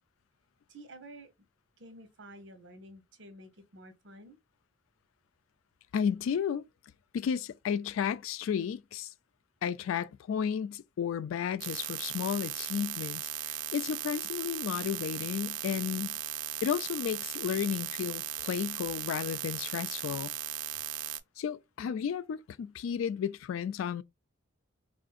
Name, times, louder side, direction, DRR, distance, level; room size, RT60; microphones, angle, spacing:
voice 1, 0.7-1.3 1.8-4.4, right 1 dB, 60° right, 0.9 m, -50 dB
voice 2, 5.9-6.7 7.1-9.1 9.6-16.1 16.6-20.3 21.4-24.0, left 8 dB, 90° left, 0.3 m, -33 dB
sound 1, 11.6-21.2, right 13 dB, 80° right, 0.4 m, -37 dB
3.7 x 2.5 x 2.3 m
head